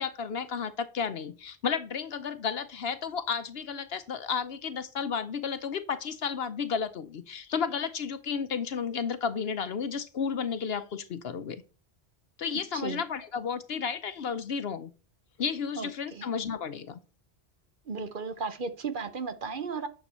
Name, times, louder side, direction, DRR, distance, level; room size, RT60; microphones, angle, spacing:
voice 1, 0.0-11.6 12.4-14.9 15.4-17.0, left 6 dB, 65° left, 12 dB, 0.9 m, -32 dB
voice 2, 12.5-13.0 15.8-16.3 17.9-19.9, right 5 dB, 50° right, 9 dB, 1.0 m, -35 dB
9.6 x 7.0 x 4.3 m, 0.34 s
omnidirectional pair, 1.1 m